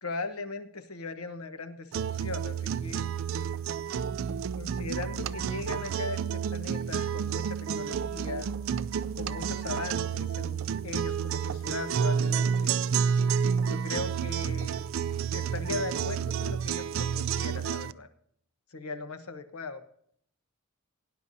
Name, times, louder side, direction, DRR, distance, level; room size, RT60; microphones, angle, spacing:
voice 1, 0.0-3.1 4.6-8.5 9.1-12.8 13.6-14.7 15.3-18.1 18.7-19.8, left 3 dB, 85° left, 9 dB, 1.1 m, -38 dB
sound 1, 1.9-17.9, right 7 dB, 65° right, 0.3 m, -30 dB
18.5 x 10.0 x 2.7 m, 0.66 s
head